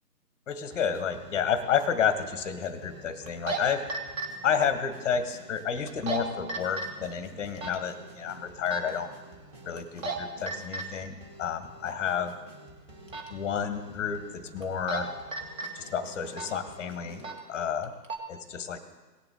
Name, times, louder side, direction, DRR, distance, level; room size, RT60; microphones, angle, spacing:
voice 1, 0.5-3.8 4.4-9.1 9.6-12.3 13.3-15.1 15.7-17.9 18.3-18.8, left 7 dB, 10° left, 10 dB, 0.8 m, -30 dB
sound 1, 0.7-17.3, right 1 dB, 25° right, 2.1 m, -50 dB
sound 2, 1.2-1.3 3.3-3.6 3.9-4.3 5.9-6.2 6.5-6.9 7.6-7.7 8.7-8.9 9.8-10.2 10.5-10.8 13.1-13.3 14.6-15.0 15.3-15.7 16.3-16.6 17.2-17.4 17.8-18.2, right 3 dB, 50° right, 2.2 m, -32 dB
18.5 x 7.1 x 3.6 m, 1.2 s
hypercardioid pair, 145°, 50 cm